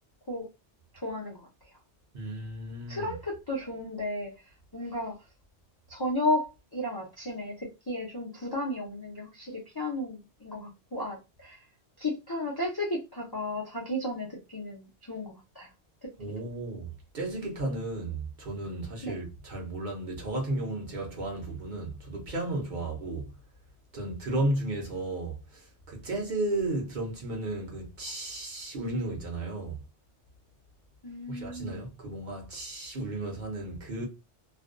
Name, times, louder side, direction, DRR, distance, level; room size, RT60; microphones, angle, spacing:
voice 1, 0.9-1.5 2.9-4.3 4.7-5.2 5.9-11.6 12.0-15.7 19.0-19.2 24.3-24.4 31.0-31.8, left 1 dB, 30° left, 0.4 m, -34 dB
voice 2, 2.1-3.1 16.2-23.3 23.9-29.8 31.3-34.1, right 2 dB, 50° right, 0.8 m, -34 dB
2.5 x 2.2 x 2.4 m
omnidirectional pair, 1.2 m